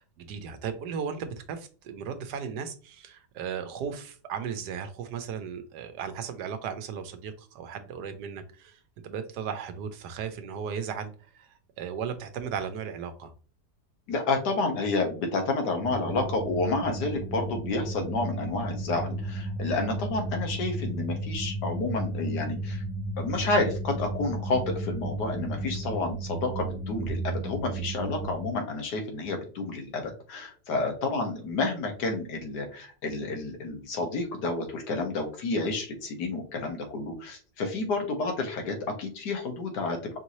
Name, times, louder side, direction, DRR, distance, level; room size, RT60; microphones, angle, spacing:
voice 1, 0.0-11.5 11.8-13.3, right 7 dB, 80° right, 9 dB, 1.3 m, -36 dB
voice 2, 14.1-22.8 23.2-40.2, left 3 dB, 80° left, 4 dB, 1.6 m, -30 dB
sound 1, 15.8-28.5, right 2 dB, 55° right, 1.2 m, -34 dB
5.2 x 2.7 x 3.0 m, 0.38 s
omnidirectional pair, 1.7 m